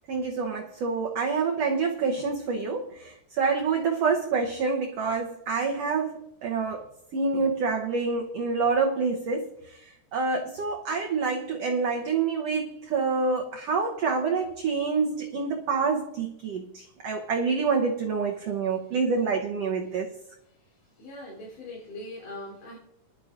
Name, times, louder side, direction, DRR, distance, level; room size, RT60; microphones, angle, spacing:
voice 1, 0.1-6.8 7.1-9.8 10.1-20.1, right 4 dB, 65° right, 1.7 m, -27 dB
voice 2, 20.4-22.8, left 1 dB, 65° left, 5.2 m, -42 dB
21.5 x 11.5 x 2.6 m
omnidirectional pair, 4.0 m